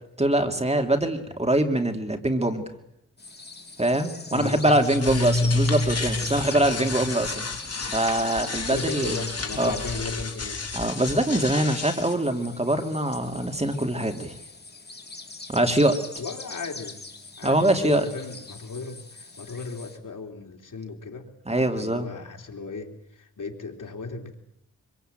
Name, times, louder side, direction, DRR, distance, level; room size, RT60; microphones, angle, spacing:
voice 1, 0.2-2.6 3.8-7.5 7.9-9.2 9.6-9.7 10.7-14.3 15.5-16.0 17.4-18.0 21.5-22.1, right 1 dB, 20° right, 5 dB, 2.8 m, -23 dB
sound 1, 3.2-20.0, left 3 dB, 30° left, 3.2 m, -42 dB
voice 2, 4.3-4.9 8.7-10.6 16.2-17.1 17.4-24.3, left 4 dB, 75° left, 3 dB, 3.6 m, -35 dB
sound 2, 4.6-12.1, left 3 dB, 50° left, 3.6 m, -29 dB
25.0 x 24.5 x 9.1 m, 0.77 s
wide cardioid pair, 95°, 32 cm